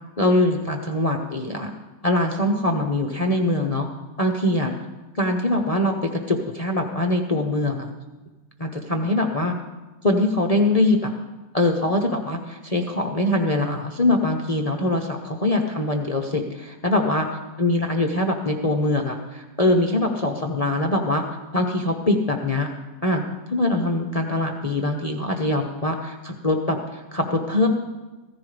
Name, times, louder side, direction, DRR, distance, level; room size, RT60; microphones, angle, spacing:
voice 1, 0.2-1.7 2.0-3.9 4.2-4.7 5.1-7.9 8.6-9.6 10.0-11.1 11.5-17.3 17.6-21.2 21.5-22.7 23.0-23.2 23.5-27.7, left 1 dB, 40° left, 2 dB, 0.5 m, -23 dB
15.5 x 14.5 x 3.4 m, 1.2 s
omnidirectional pair, 2.0 m